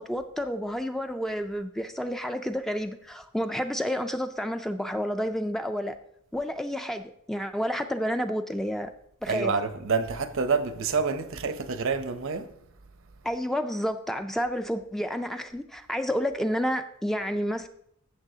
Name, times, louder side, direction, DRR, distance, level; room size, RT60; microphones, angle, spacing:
voice 1, 0.0-6.0 6.3-8.9 9.2-9.5 13.2-17.7, equal, ahead, 0.3 m, -30 dB
voice 2, 9.3-12.5, right 5 dB, 65° right, 0.7 m, -27 dB
14.0 x 6.6 x 2.7 m
head